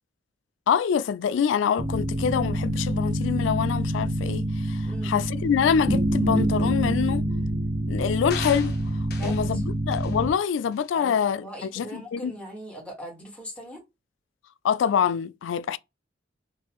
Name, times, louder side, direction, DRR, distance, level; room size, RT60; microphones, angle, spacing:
voice 1, 0.7-7.2 7.9-8.7 9.2-12.3 14.6-15.8, left 7 dB, 85° left, 0.3 m, -25 dB
sound 1, 1.8-10.3, right 1 dB, 25° right, 0.6 m, -26 dB
sound 2, 8.3-9.5 9.9-10.2 10.7-10.9, left 5 dB, 60° left, 0.9 m, -38 dB
voice 2, 9.1-9.6 10.9-13.8, equal, 5° left, 1.5 m, -40 dB
3.8 x 2.4 x 2.9 m
head